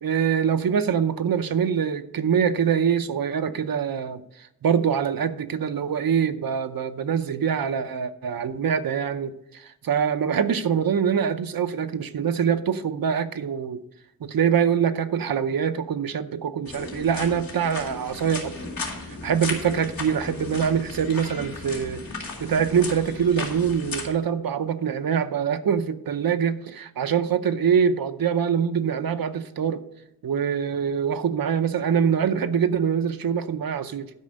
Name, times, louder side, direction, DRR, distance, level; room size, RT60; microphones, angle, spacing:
voice 1, 0.0-4.2 4.6-13.8 14.2-18.5 19.0-22.0 22.4-29.8 30.2-34.1, right 7 dB, 75° right, 10 dB, 0.7 m, -24 dB
sound 1, 16.7-24.1, left 3 dB, 70° left, 3.0 m, -35 dB
12.0 x 5.1 x 6.5 m, 0.83 s
wide cardioid pair, 105°, 36 cm